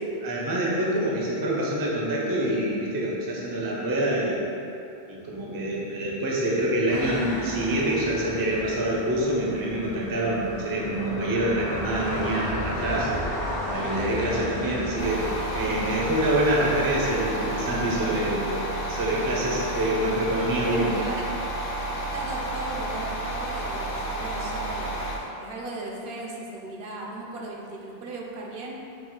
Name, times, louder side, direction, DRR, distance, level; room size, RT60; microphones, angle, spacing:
voice 1, 0.2-4.5 5.1-13.1 13.6-18.6 18.9-21.0, right 1 dB, 30° right, -4 dB, 0.4 m, -26 dB
sound 1, 6.9-18.0, left 1 dB, 75° left, 1.0 m, -34 dB
sound 2, 15.0-25.2, right 1 dB, 55° left, 0.6 m, -31 dB
voice 2, 20.5-21.2 22.1-28.7, right 2 dB, 75° right, -2 dB, 0.8 m, -37 dB
4.2 x 2.3 x 3.7 m, 2.8 s
omnidirectional pair, 1.0 m